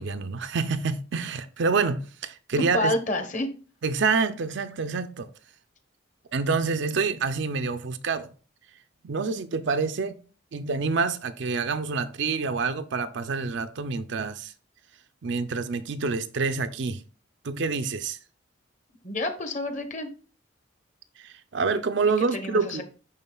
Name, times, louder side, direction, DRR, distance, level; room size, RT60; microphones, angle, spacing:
voice 1, 0.0-2.9 3.8-5.3 6.3-8.3 9.0-10.2 10.5-14.5 15.2-17.0 17.4-18.2 21.2-22.8, right 4 dB, 60° right, 0.5 m, -27 dB
voice 2, 2.6-3.5 19.0-20.1 22.3-22.8, left 1 dB, 35° left, 0.9 m, -28 dB
11.0 x 3.7 x 2.3 m
head